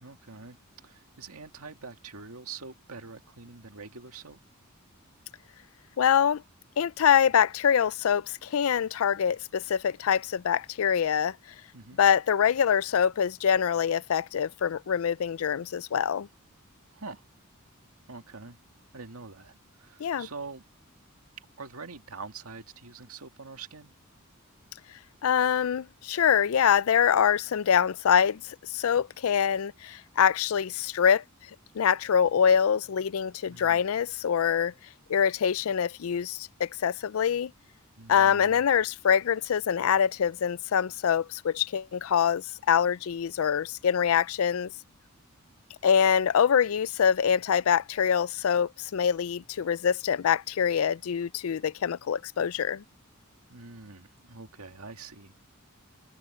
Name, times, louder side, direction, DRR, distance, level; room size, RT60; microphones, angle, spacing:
voice 1, 0.0-4.4 11.7-12.0 16.9-17.2 18.1-18.6 18.9-20.6 21.4-23.9 33.5-33.8 38.0-38.6 53.5-55.5, right 4 dB, 85° right, 2.1 m, -45 dB
voice 2, 6.0-6.4 6.8-11.4 12.0-16.3 20.0-20.3 25.2-31.2 31.7-34.7 35.1-37.5 38.1-44.7 45.8-52.8, left 8 dB, 70° left, 0.4 m, -25 dB
head